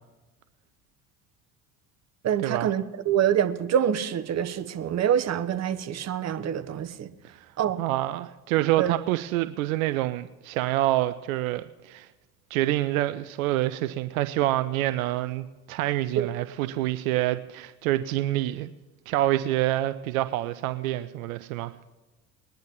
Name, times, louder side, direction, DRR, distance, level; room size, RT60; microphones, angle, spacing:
voice 1, 2.2-7.1 7.6-7.8 8.8-8.9 16.2-16.3, right 9 dB, 35° right, 0.9 m, -26 dB
voice 2, 7.8-12.1 12.5-18.7 19.1-21.7, right 15 dB, 70° right, 0.6 m, -27 dB
21.5 x 10.5 x 3.0 m
hypercardioid pair, 65°, 44 cm